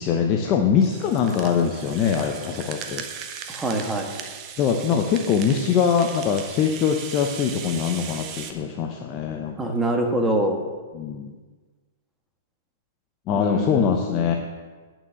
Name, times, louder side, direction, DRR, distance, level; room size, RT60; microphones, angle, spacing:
voice 1, 0.0-3.0 4.6-9.7 10.9-11.3 13.3-14.3, left 7 dB, 30° left, 2 dB, 0.9 m, -23 dB
Rattle (instrument), 0.8-8.5, right 7 dB, 30° right, 1.0 m, -38 dB
voice 2, 3.5-4.1 9.6-10.6 13.3-14.3, right 1 dB, 10° right, 2 dB, 1.4 m, -25 dB
9.5 x 6.0 x 8.0 m, 1.4 s
hypercardioid pair, 145°, 0 cm